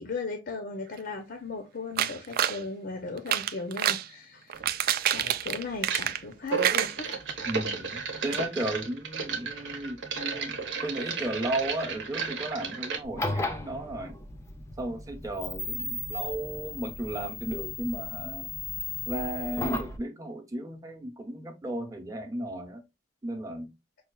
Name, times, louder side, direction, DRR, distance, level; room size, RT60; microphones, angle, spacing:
voice 1, 0.0-4.5 5.1-7.1, left 3 dB, 60° left, 0.6 m, -37 dB
sound 1, 2.0-2.6 3.2-4.1 4.5-6.3 6.6-7.5 7.9-8.0 8.3-8.4, right 11 dB, 55° right, 0.3 m, -27 dB
sound 2, 4.5-4.7 5.8-6.1 6.4-13.0, right 5 dB, 80° right, 0.9 m, -33 dB
voice 2, 7.5-14.2 14.8-18.5 19.1-22.8 23.2-23.7, right 1 dB, 20° right, 0.7 m, -35 dB
sound 3, 13.0-20.0, left 3 dB, 15° left, 0.5 m, -35 dB
5.4 x 2.4 x 2.2 m
head